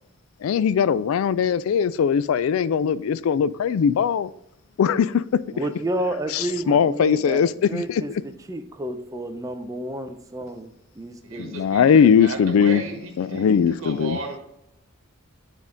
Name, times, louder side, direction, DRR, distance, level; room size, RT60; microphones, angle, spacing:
voice 1, 0.4-4.3 4.8-5.2 6.3-8.0 11.4-12.8 13.2-14.2, left 7 dB, 85° left, 0.3 m, -20 dB
voice 2, 5.5-7.4 7.7-8.1 8.5-11.5, right 1 dB, 15° right, 0.5 m, -30 dB
voice 3, 11.2-14.4, right 3 dB, 80° right, 1.3 m, -34 dB
9.6 x 3.6 x 3.7 m
head